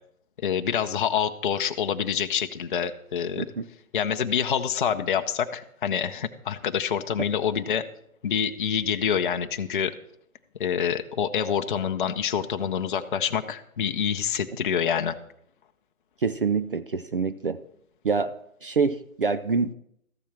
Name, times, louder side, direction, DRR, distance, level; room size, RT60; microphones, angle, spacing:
voice 1, 0.4-3.5 3.9-7.8 8.2-9.9 10.6-15.2, left 8 dB, 35° left, 6 dB, 0.6 m, -26 dB
voice 2, 16.2-17.6 18.0-18.4 18.6-19.7, right 5 dB, 40° right, 12 dB, 0.4 m, -26 dB
13.5 x 7.2 x 5.9 m, 0.71 s
hypercardioid pair, 150°, 43 cm